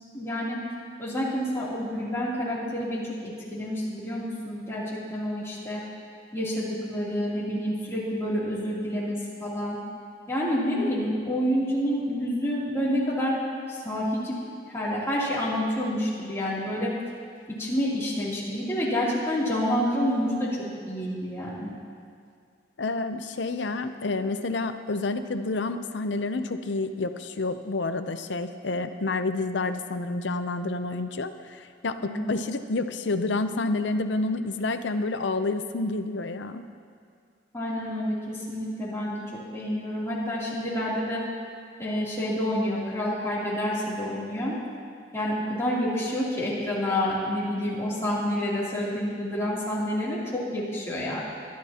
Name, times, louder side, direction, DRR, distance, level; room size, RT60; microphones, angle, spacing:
voice 1, 0.1-0.6 1.0-5.8 6.3-9.8 10.3-13.4 13.7-14.4 14.7-16.9 17.6-20.5 20.9-21.7 32.0-32.3 37.5-41.2 41.8-44.6 45.1-51.2, equal, 15° left, -8 dB, 3.0 m, -28 dB
voice 2, 22.8-36.7, left 3 dB, 75° left, 9 dB, 0.7 m, -29 dB
23.0 x 11.5 x 2.9 m, 2.2 s
head